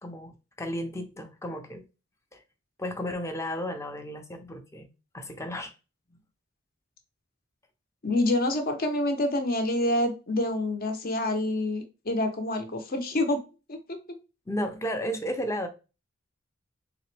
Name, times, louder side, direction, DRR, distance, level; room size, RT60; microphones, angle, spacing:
voice 1, 0.0-1.8 2.3-2.4 2.8-4.9 5.1-5.7 6.1-6.2 14.5-15.7, equal, 15° left, 0.6 m, -33 dB
voice 2, 8.0-13.4 13.7-14.0, left 1 dB, 45° left, 0.8 m, -27 dB
3.9 x 2.9 x 3.3 m
head